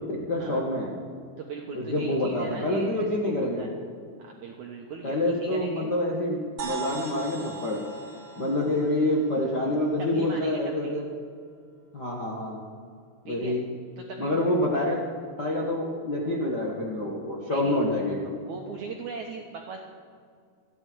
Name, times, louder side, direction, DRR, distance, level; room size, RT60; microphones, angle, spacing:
voice 1, 0.3-1.0 1.7-3.7 5.0-7.8 8.4-11.1 11.9-12.6 13.2-13.6 14.2-14.9 15.4-18.4, left 1 dB, 50° left, -4 dB, 1.3 m, -27 dB
voice 2, 1.4-3.7 4.2-5.9 10.0-10.9 13.3-13.6 14.0-14.6 15.4-15.6 17.5-17.8 18.4-19.8, right 5 dB, 70° right, 0 dB, 1.9 m, -39 dB
sound 1, 6.6-10.3, right 6 dB, 50° right, 1.8 m, -40 dB
28.5 x 10.5 x 4.7 m, 2.1 s
omnidirectional pair, 4.9 m